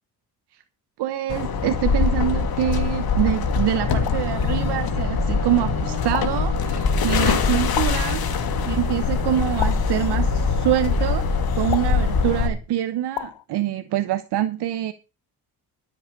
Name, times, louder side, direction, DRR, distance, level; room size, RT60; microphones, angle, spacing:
voice 1, 1.0-14.9, right 12 dB, 75° right, 1.0 m, -25 dB
sound 1, 1.3-12.5, left 5 dB, 60° left, 2.8 m, -23 dB
sound 2, 3.5-11.2, left 1 dB, 40° right, 2.9 m, -38 dB
sound 3, 4.1-4.4 6.1-6.5 7.7-8.2 9.6-10.0 11.7-12.1 13.2-13.4, left 15 dB, 85° left, 0.9 m, -32 dB
13.0 x 7.9 x 5.3 m
cardioid pair, 75°, 40 cm